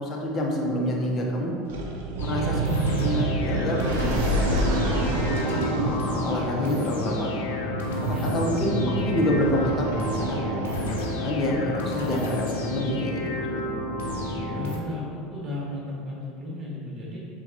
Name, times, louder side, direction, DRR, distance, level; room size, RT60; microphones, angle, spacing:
voice 1, 0.0-1.5 2.2-4.1 4.4-5.2 5.7-7.3 7.9-10.4 10.8-13.8, left 1 dB, 35° left, -2 dB, 0.7 m, -28 dB
sound 1, 1.7-11.2, right 2 dB, 80° right, 0.5 m, -28 dB
sound 2, 2.2-14.8, left 1 dB, 85° left, 0.6 m, -31 dB
voice 2, 14.5-17.2, left 2 dB, 25° right, -6 dB, 1.3 m, -34 dB
5.7 x 2.3 x 2.7 m, 2.5 s
supercardioid pair, 100°, 0 cm